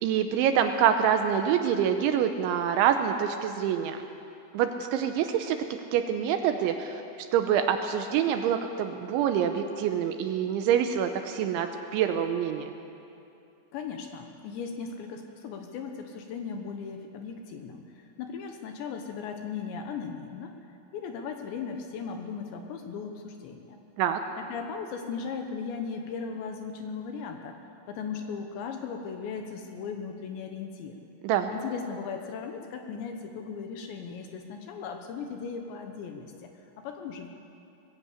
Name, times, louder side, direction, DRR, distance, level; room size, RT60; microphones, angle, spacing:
voice 1, 0.0-4.0 4.5-5.6 5.9-7.0 7.3-12.7 24.0-24.2 31.2-31.5, right 9 dB, 80° right, 7 dB, 2.9 m, -26 dB
voice 2, 13.7-20.5 20.9-23.8 24.4-27.6 27.9-31.0 31.5-37.3, left 5 dB, 75° left, 4 dB, 3.0 m, -37 dB
21.0 x 15.5 x 8.3 m, 2.7 s
omnidirectional pair, 5.9 m